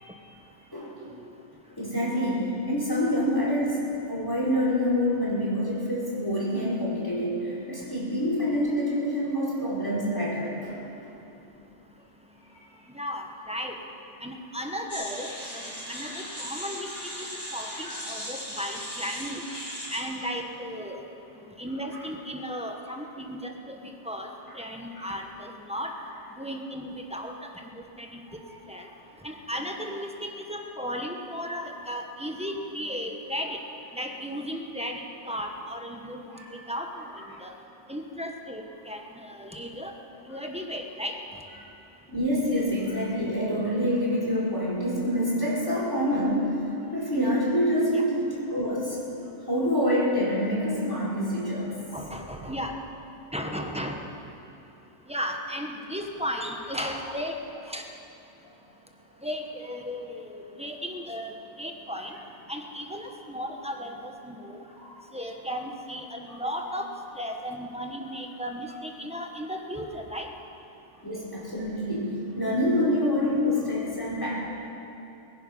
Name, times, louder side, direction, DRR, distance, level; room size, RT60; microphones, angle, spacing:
voice 1, 0.7-1.1 1.8-3.8 4.1-11.1 12.5-12.6 17.8-18.0 21.9-22.1 25.0-25.1 36.3-36.5 42.1-46.6 46.9-49.0 49.5-51.8 64.8-64.9 66.3-66.4 71.0-74.4, equal, 20° left, -6 dB, 4.3 m, -27 dB
voice 2, 12.9-13.7 14.2-16.9 17.5-19.4 19.9-21.0 21.6-23.8 24.0-25.9 26.4-27.5 28.0-28.4 28.7-28.9 29.2-33.6 33.9-37.5 37.9-39.9 40.3-41.2 47.9-48.0 51.9-52.7 53.3-54.0 55.1-57.4 57.7-57.9 59.2-62.2 62.5-64.6 65.1-66.9 67.2-70.3, equal, 5° right, 2 dB, 1.1 m, -35 dB
sound 1, 14.9-20.0, equal, 35° left, 2.9 m, -38 dB
22.0 x 10.5 x 5.6 m, 2.9 s
omnidirectional pair, 1.2 m